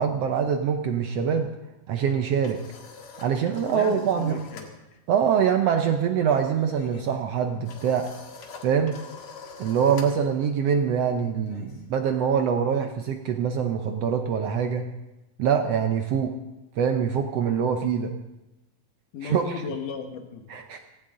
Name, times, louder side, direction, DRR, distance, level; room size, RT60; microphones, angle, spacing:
voice 1, 0.0-1.5 1.9-2.6 3.2-4.4 5.1-8.1 8.6-9.0 9.6-14.9 15.4-16.3 16.8-18.1 19.2-19.5 20.5-20.8, right 7 dB, 75° right, 5 dB, 1.5 m, -24 dB
sound 1, 2.1-4.8 5.0-5.3 5.6-12.3, left 4 dB, 50° left, 2.4 m, -46 dB
voice 2, 3.7-4.7 19.1-20.5, left 5 dB, 85° left, 5 dB, 3.0 m, -35 dB
17.0 x 16.0 x 3.8 m, 0.98 s
omnidirectional pair, 3.7 m